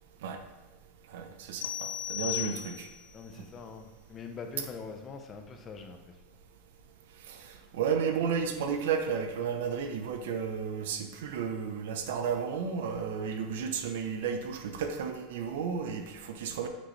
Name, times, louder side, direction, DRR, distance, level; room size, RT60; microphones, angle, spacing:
voice 1, 1.1-2.9 7.3-16.7, right 6 dB, 80° right, 6 dB, 0.9 m, -33 dB
sound 1, 1.6-3.1, left 13 dB, 80° left, 0.4 m, -36 dB
voice 2, 3.1-6.2, left 5 dB, 20° left, 5 dB, 0.7 m, -43 dB
9.5 x 6.2 x 3.3 m, 1.2 s
supercardioid pair, 165°, 0 cm